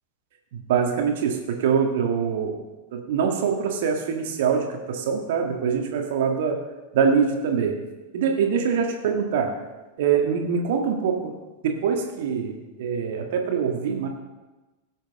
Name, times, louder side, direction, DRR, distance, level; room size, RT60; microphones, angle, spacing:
voice 1, 0.5-2.6 2.9-6.6 6.9-7.8 8.1-9.5 10.0-11.4 11.6-14.1, right 6 dB, 55° right, 3 dB, 1.8 m, -24 dB
17.5 x 8.0 x 3.7 m, 1.1 s
figure-of-eight pair, 90°, 0 cm